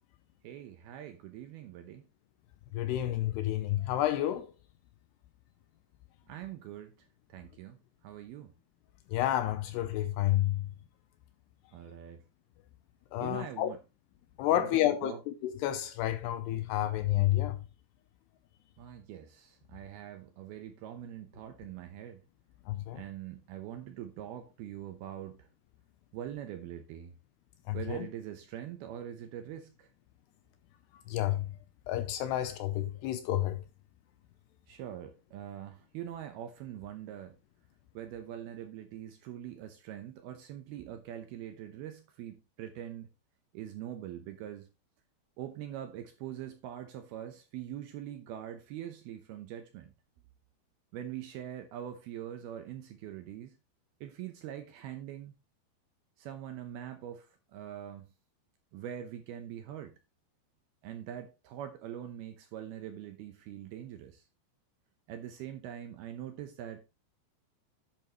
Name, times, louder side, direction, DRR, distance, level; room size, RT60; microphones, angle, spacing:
voice 1, 0.4-2.0 6.3-7.0 7.3-7.8 8.0-8.5 11.7-12.2 13.2-13.8 14.5-15.2 18.8-22.2 22.9-25.5 26.1-27.1 27.7-29.9 34.7-37.4 37.9-43.1 43.5-44.7 45.4-49.9 50.9-53.6 54.0-55.4 56.2-58.1 58.7-60.0 60.8-64.3 65.1-66.9, right 11 dB, 75° right, 2.4 m, -43 dB
voice 2, 2.7-4.5 9.1-10.7 13.1-13.7 14.4-17.6 22.7-23.0 27.7-28.1 31.1-31.5 31.9-33.6, left 13 dB, 80° left, 2.5 m, -30 dB
10.5 x 8.1 x 3.0 m
omnidirectional pair, 5.3 m